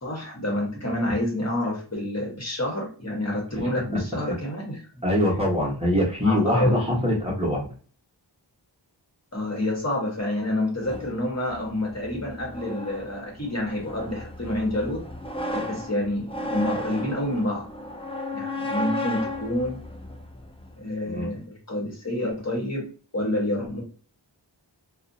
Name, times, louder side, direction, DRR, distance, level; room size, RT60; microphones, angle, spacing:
voice 1, 0.0-4.8 6.2-6.8 9.3-15.0 15.5-17.7 18.3-19.8 20.8-22.9 23.1-23.8, left 1 dB, 35° left, -2 dB, 1.0 m, -28 dB
voice 2, 5.0-7.7 21.1-21.3, left 1 dB, 15° right, -4 dB, 0.9 m, -23 dB
sound 1, 10.8-20.8, left 1 dB, 15° left, 0.3 m, -34 dB
2.4 x 2.1 x 2.5 m, 0.40 s
wide cardioid pair, 55°, 44 cm